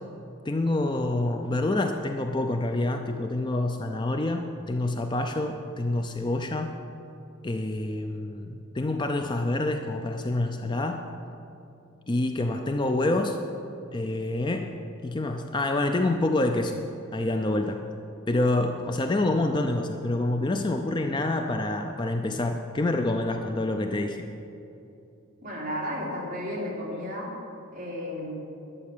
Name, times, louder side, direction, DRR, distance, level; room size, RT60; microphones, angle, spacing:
voice 1, 0.5-6.7 7.4-11.1 12.1-13.4 13.9-14.8 15.0-16.8 17.1-17.9 18.3-24.3, left 2 dB, 20° left, 5 dB, 0.4 m, -27 dB
voice 2, 25.4-27.3 27.7-28.4, equal, 40° right, -5 dB, 3.1 m, -33 dB
11.5 x 7.8 x 6.7 m, 2.7 s
head